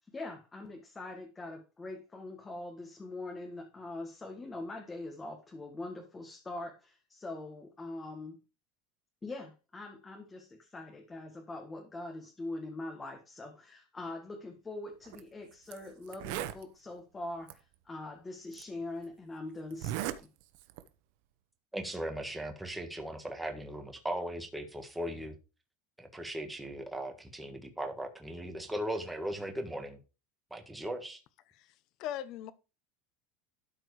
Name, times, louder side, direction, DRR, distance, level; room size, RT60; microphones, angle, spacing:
voice 1, 0.1-8.4 9.2-20.3, left 2 dB, 15° left, 1.7 m, -43 dB
Zipper (clothing), 15.0-15.2 15.7-15.8 16.1-16.6 17.5-17.6 18.5-18.6 19.7-20.2 20.5-20.9, right 13 dB, 70° right, 1.0 m, -36 dB
voice 2, 21.7-25.3 26.0-30.0 30.5-31.2, right 1 dB, 5° right, 1.7 m, -38 dB
voice 3, 32.0-32.5, left 11 dB, 50° left, 1.1 m, -38 dB
12.5 x 4.7 x 4.9 m
supercardioid pair, 140°, 0 cm